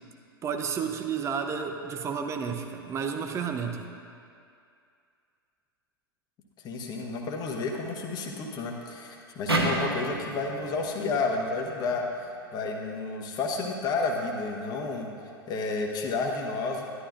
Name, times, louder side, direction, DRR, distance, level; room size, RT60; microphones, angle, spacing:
voice 1, 0.4-3.9, right 6 dB, 20° right, 5 dB, 0.7 m, -31 dB
voice 2, 6.6-12.0 12.5-15.1 15.5-16.8, left 3 dB, 30° left, 1 dB, 1.2 m, -31 dB
sound 1, 9.5-12.7, right 2 dB, 85° right, 1.0 m, -32 dB
11.0 x 11.0 x 2.5 m, 2.4 s
figure-of-eight pair, 95°, 13 cm